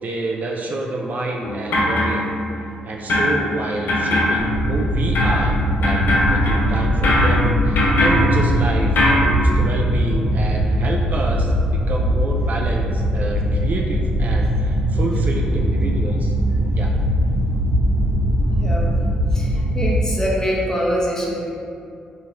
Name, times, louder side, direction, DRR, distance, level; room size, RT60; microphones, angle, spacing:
voice 1, 0.0-2.3 2.8-8.9 9.2-16.3 16.7-16.9, right 2 dB, 50° right, -1 dB, 0.3 m, -28 dB
sound 1, 1.4-2.8 3.1-9.2, left 1 dB, 65° left, 0.5 m, -21 dB
sound 2, 4.4-20.0, equal, 75° right, 0.8 m, -20 dB
voice 2, 19.7-21.5, equal, 15° left, -3 dB, 0.7 m, -23 dB
2.9 x 2.4 x 2.9 m, 2.4 s
hypercardioid pair, 45°, 4 cm